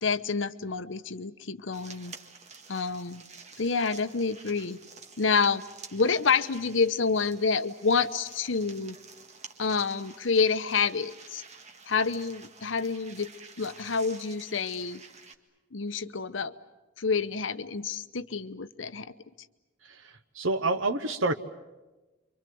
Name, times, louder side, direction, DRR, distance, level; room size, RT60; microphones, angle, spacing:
voice 1, 0.0-2.1 2.7-3.2 3.6-4.8 5.2-5.6 5.9-9.0 9.6-11.4 11.9-13.3 13.6-15.0 15.7-16.5 17.0-19.1, left 5 dB, 75° left, 12 dB, 0.9 m, -28 dB
sound 1, 1.7-15.3, right 4 dB, 35° right, 1.9 m, -50 dB
voice 2, 19.8-21.3, right 2 dB, 85° right, 8 dB, 1.1 m, -28 dB
29.5 x 24.5 x 7.8 m, 1.1 s
head